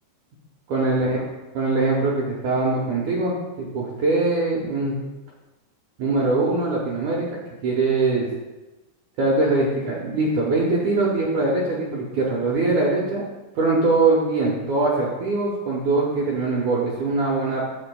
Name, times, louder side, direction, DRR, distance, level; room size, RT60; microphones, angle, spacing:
voice 1, 0.7-1.3 1.5-5.0 6.0-8.3 9.2-13.2 13.6-17.6, right 3 dB, 80° right, -4 dB, 1.7 m, -22 dB
10.0 x 6.9 x 2.2 m, 1.1 s
omnidirectional pair, 4.9 m